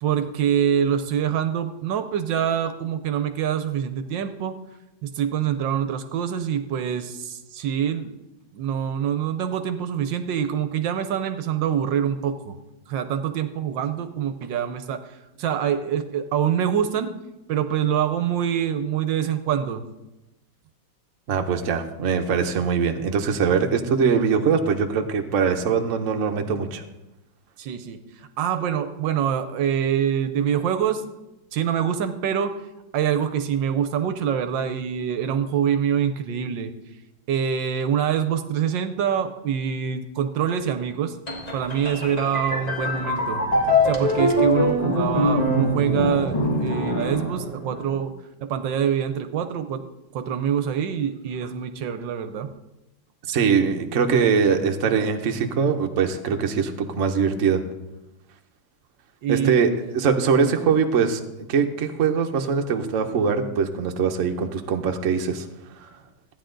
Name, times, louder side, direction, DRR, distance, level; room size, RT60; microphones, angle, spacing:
voice 1, 0.0-4.5 5.0-8.1 8.5-12.6 12.9-17.1 17.5-19.8 27.6-31.0 31.5-32.6 32.9-36.7 37.3-41.2 41.5-43.4 43.8-48.1 48.4-52.5 59.2-59.6, right 8 dB, 75° right, 10 dB, 1.3 m, -25 dB
voice 2, 21.3-26.8 53.3-57.6 59.3-59.7 59.9-61.2 61.5-65.5 65.8-65.9, right 6 dB, 50° right, 5 dB, 1.0 m, -22 dB
sound 1, 41.3-48.0, left 1 dB, 20° left, 1.4 m, -23 dB
14.5 x 9.7 x 3.8 m, 0.97 s
omnidirectional pair, 2.1 m